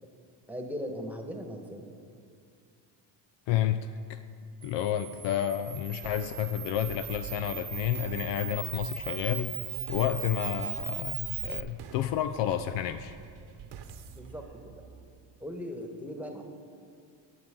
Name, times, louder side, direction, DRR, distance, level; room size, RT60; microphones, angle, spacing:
voice 1, 0.5-1.8 14.1-14.8 15.4-16.4, equal, 5° right, 3 dB, 1.3 m, -39 dB
voice 2, 3.5-4.2 4.6-9.5 9.9-13.1, left 11 dB, 60° left, 11 dB, 0.5 m, -30 dB
Camera, 4.6-11.6, right 9 dB, 35° right, 0.9 m, -38 dB
sound 1, 6.0-15.5, right 7 dB, 60° right, 1.1 m, -47 dB
18.0 x 6.2 x 3.7 m, 2.3 s
supercardioid pair, 75°, 50 cm